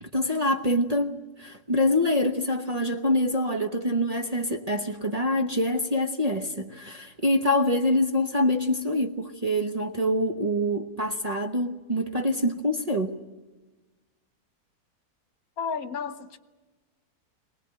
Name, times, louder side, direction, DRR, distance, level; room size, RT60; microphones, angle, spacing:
voice 1, 0.0-13.2, left 1 dB, 30° right, 1.0 m, -25 dB
voice 2, 15.6-16.4, left 6 dB, 70° left, 1.5 m, -32 dB
23.5 x 19.0 x 9.0 m
omnidirectional pair, 1.6 m